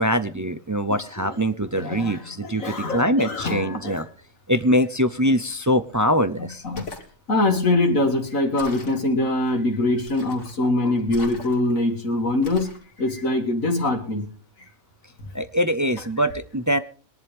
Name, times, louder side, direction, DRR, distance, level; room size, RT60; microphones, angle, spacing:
voice 1, 0.0-4.1 4.5-6.6 15.3-16.8, equal, 25° right, 11 dB, 0.4 m, -23 dB
voice 2, 1.7-4.0 6.4-6.8 7.3-12.7 13.0-14.3, left 2 dB, 75° left, 4 dB, 2.4 m, -23 dB
sound 1, 6.6-7.1 8.6-9.0 10.1-10.6 11.1-11.8 12.4-12.8, left 3 dB, 60° left, 2.7 m, -39 dB
22.0 x 11.0 x 3.5 m, 0.41 s
omnidirectional pair, 1.4 m